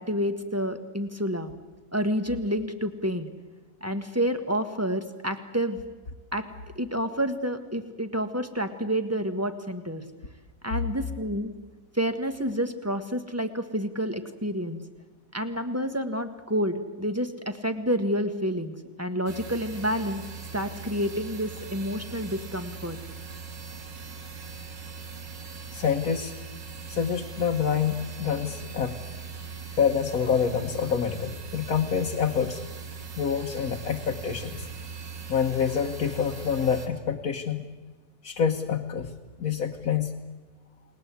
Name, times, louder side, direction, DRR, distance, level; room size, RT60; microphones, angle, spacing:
voice 1, 0.0-1.5 1.9-3.3 3.8-5.8 6.3-6.5 6.7-10.0 10.6-11.5 11.9-14.8 15.3-20.2 20.5-23.0, equal, 10° right, 7 dB, 1.4 m, -29 dB
sound 1, 19.3-36.9, right 5 dB, 85° right, 2.9 m, -40 dB
voice 2, 25.7-26.3 26.9-29.0 29.8-32.6 33.2-34.7 35.3-37.6 38.2-39.1 39.4-40.1, left 7 dB, 55° left, 1 dB, 1.7 m, -27 dB
30.0 x 20.0 x 8.4 m, 1.2 s
omnidirectional pair, 1.9 m